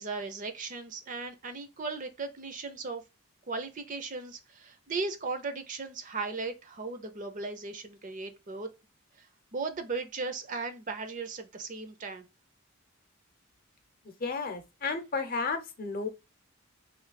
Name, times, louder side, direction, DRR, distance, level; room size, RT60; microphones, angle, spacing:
voice 1, 0.0-3.0 3.5-8.7 9.2-12.2, right 4 dB, 40° right, 0.5 m, -37 dB
voice 2, 14.2-16.1, left 4 dB, 45° left, 0.7 m, -32 dB
3.1 x 2.7 x 4.0 m
head